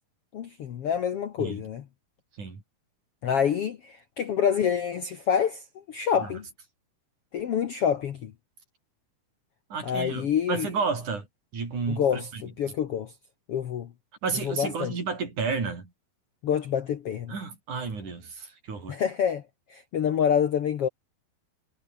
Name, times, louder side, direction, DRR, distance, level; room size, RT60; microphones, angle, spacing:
voice 1, 0.3-1.8 3.2-5.6 5.9-6.4 7.3-8.3 9.8-10.7 11.9-13.1 13.5-13.9 14.4-14.9 16.4-17.3 18.9-19.4 19.7-20.9, left 8 dB, 70° left, 1.4 m, -27 dB
voice 2, 9.7-11.3 11.5-12.4 14.2-15.9 17.3-19.0, right 5 dB, 50° right, 6.9 m, -31 dB
omnidirectional pair, 4.4 m